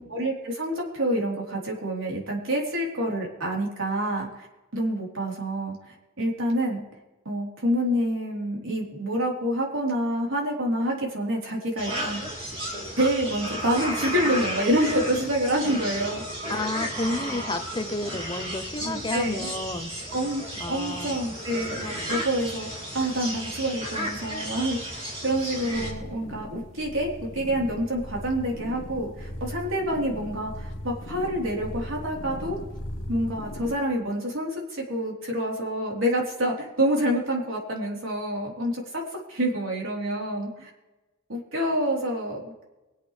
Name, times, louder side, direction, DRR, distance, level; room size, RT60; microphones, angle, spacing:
voice 1, 0.0-4.5 4.7-6.8 7.3-12.2 13.0-16.2 16.5-16.6 18.8-19.5 20.1-20.4 20.7-22.7 22.9-32.6 33.1-39.0 39.3-40.7 41.3-42.6, right 1 dB, 75° right, -2 dB, 3.9 m, -27 dB
sound 1, 11.8-25.9, equal, 25° right, 2.8 m, -33 dB
voice 2, 16.5-19.9 20.6-21.2, left 2 dB, 20° left, 7 dB, 0.8 m, -31 dB
sound 2, 25.7-33.7, left 1 dB, 60° left, 1.3 m, -38 dB
24.5 x 8.5 x 3.4 m, 1.1 s
head